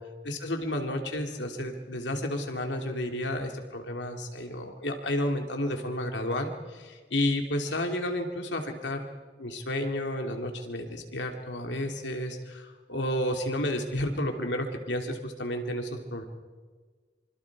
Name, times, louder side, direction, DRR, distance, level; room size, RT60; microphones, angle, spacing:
voice 1, 0.2-9.1 9.4-16.2, left 1 dB, 80° left, 3 dB, 2.8 m, -31 dB
26.0 x 25.5 x 4.8 m, 1.4 s
head